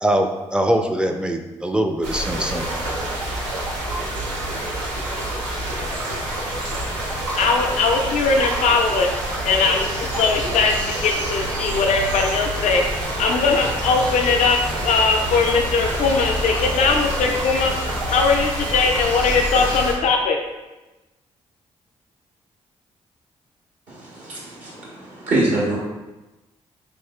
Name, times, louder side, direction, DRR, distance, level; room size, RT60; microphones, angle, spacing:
voice 1, 0.0-3.1, right 1 dB, 5° right, 5 dB, 0.4 m, -23 dB
sound 1, 2.0-19.9, right 1 dB, 90° right, 0.6 m, -27 dB
voice 2, 7.4-9.1 9.4-14.6 14.8-17.7 18.1-20.4, left 4 dB, 65° left, 2 dB, 0.4 m, -20 dB
voice 3, 23.9-25.8, right 2 dB, 70° right, -7 dB, 1.2 m, -24 dB
3.6 x 2.9 x 2.2 m, 1.1 s
hypercardioid pair, 40°, 14 cm